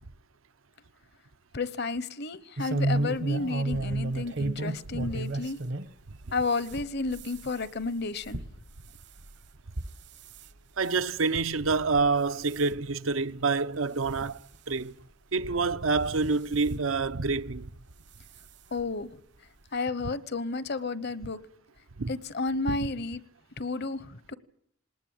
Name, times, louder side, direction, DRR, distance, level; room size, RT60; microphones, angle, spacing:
voice 1, 1.5-5.6 6.3-8.4 18.7-19.1 19.7-21.4 22.1-23.2 23.6-24.3, left 3 dB, 55° left, 1.0 m, -32 dB
sound 1, 2.6-5.9 6.3-10.5 10.9-11.2 11.8-12.1 12.4-12.7 13.3-13.4 13.7-13.8 15.0-15.1 15.8-16.7 17.8-18.0 18.4-18.5 18.8-18.9, right 2 dB, 60° right, 1.1 m, -33 dB
voice 2, 10.8-14.4 14.7-14.9 15.3-17.7 22.0-22.1 22.7-22.8, right 4 dB, 80° right, 0.8 m, -27 dB
20.5 x 19.0 x 8.9 m
head